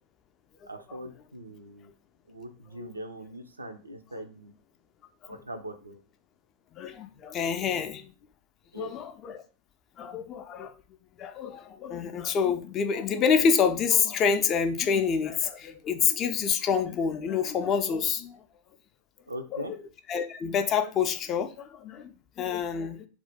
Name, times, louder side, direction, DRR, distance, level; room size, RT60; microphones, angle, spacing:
voice 1, 0.7-1.9 2.3-4.5 5.3-6.0 8.7-8.9 19.3-19.7, right 1 dB, 80° right, 0.4 m, -41 dB
voice 2, 6.7-8.1 8.8-9.4 10.0-10.7 11.2-18.4 19.5-19.8 20.1-23.1, left 6 dB, 30° left, 0.3 m, -27 dB
2.4 x 2.1 x 3.4 m
figure-of-eight pair, 90°, 0 cm